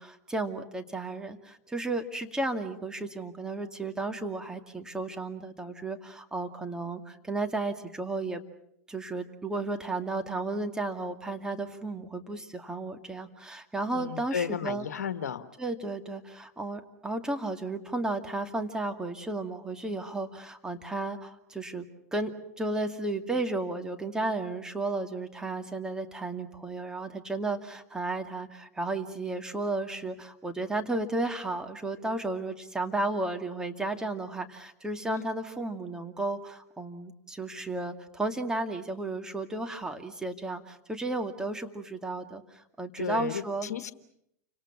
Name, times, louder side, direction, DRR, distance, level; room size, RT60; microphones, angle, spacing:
voice 1, 0.0-8.4 8.9-14.9 15.6-21.9 22.1-43.7, right 2 dB, 10° right, 5 dB, 2.4 m, -33 dB
voice 2, 13.9-15.5 35.1-35.3 43.0-43.9, left 8 dB, 75° left, 11 dB, 1.5 m, -33 dB
29.5 x 26.0 x 6.1 m, 0.76 s
hypercardioid pair, 100°, 9 cm